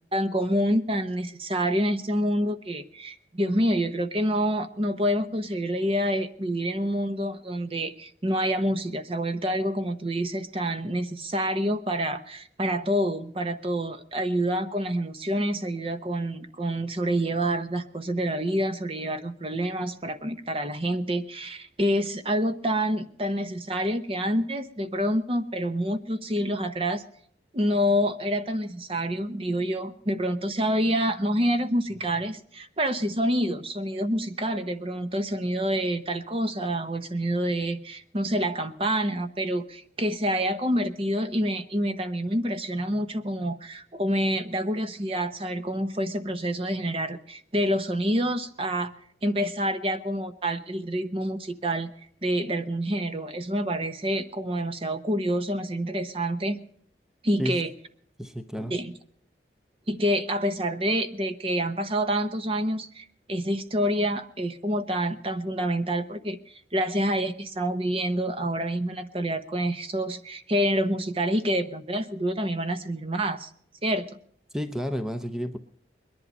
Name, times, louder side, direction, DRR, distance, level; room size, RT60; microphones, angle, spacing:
voice 1, 0.1-27.0 27.5-48.9 49.2-51.9 52.2-56.6 57.2-57.7 58.7-58.9 59.9-73.5 73.8-74.1, equal, 30° right, 10 dB, 0.9 m, -27 dB
voice 2, 58.2-58.8 74.5-75.6, equal, 5° right, 8 dB, 0.7 m, -31 dB
21.5 x 11.0 x 5.4 m, 0.67 s
head